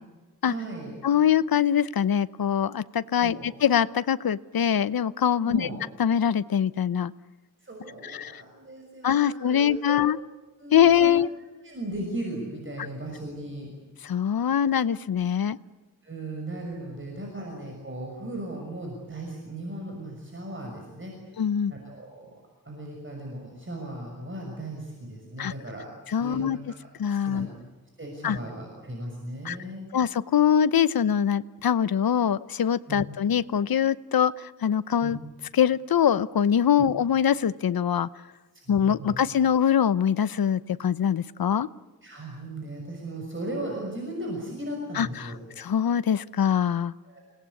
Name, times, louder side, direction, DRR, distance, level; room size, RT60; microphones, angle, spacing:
voice 1, 0.4-0.9 3.2-3.5 5.4-5.7 7.6-10.0 10.6-11.1 11.4-13.7 16.0-21.1 21.7-22.3 22.6-25.9 26.2-27.4 28.0-29.9 32.9-33.0 35.0-35.1 38.7-39.1 42.0-45.5 47.1-47.2, right 1 dB, 35° right, 0 dB, 6.2 m, -37 dB
voice 2, 1.0-5.7 6.0-7.1 8.0-8.4 9.0-10.2 10.7-11.3 14.0-15.6 21.4-21.7 25.4-25.5 26.1-26.6 27.0-27.5 28.2-28.4 29.4-29.6 29.9-35.2 35.5-38.1 38.7-41.7 44.9-45.3 45.6-46.9, left 9 dB, 80° left, 16 dB, 0.9 m, -23 dB
29.0 x 19.0 x 8.5 m, 1.2 s
wide cardioid pair, 110°, 35 cm